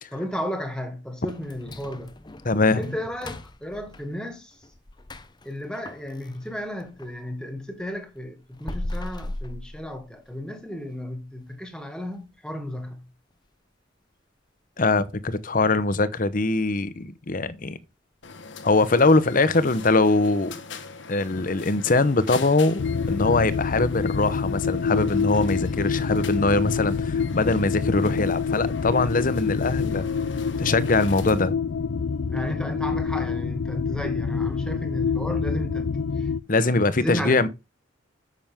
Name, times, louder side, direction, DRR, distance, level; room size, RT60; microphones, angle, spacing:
voice 1, 0.1-2.2 2.7-4.6 5.4-13.1 32.3-35.9 36.2-37.5, equal, 5° left, 2.0 m, -34 dB
sound 1, 1.3-7.2 7.6-10.4 10.8-10.9 11.4-11.5 12.0-12.3 12.6-12.7 13.3-13.4, left 1 dB, 25° left, 0.7 m, -39 dB
voice 2, 2.4-2.9 14.8-17.8 18.6-20.6 21.1-30.1 30.6-31.6 36.5-37.5, left 3 dB, 45° left, 0.9 m, -22 dB
sound 2, 18.2-31.5, left 4 dB, 70° left, 1.3 m, -42 dB
sound 3, 22.8-36.4, left 5 dB, 90° left, 0.4 m, -27 dB
9.0 x 7.1 x 3.6 m
head